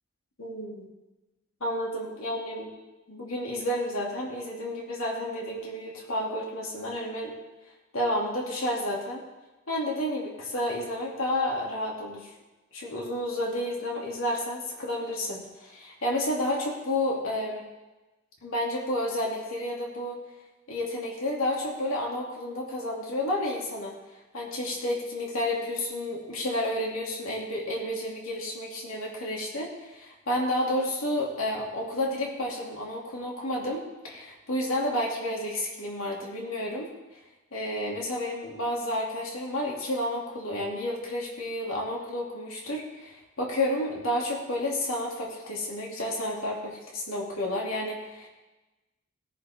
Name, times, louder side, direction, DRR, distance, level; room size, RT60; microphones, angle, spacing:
voice 1, 0.4-0.9 1.6-2.7 3.1-7.3 7.9-9.2 9.7-12.3 12.7-17.6 18.4-20.2 20.7-23.9 24.3-36.9 37.5-48.3, left 1 dB, 75° left, -2 dB, 2.7 m, -31 dB
17.5 x 10.0 x 3.7 m, 1.1 s
head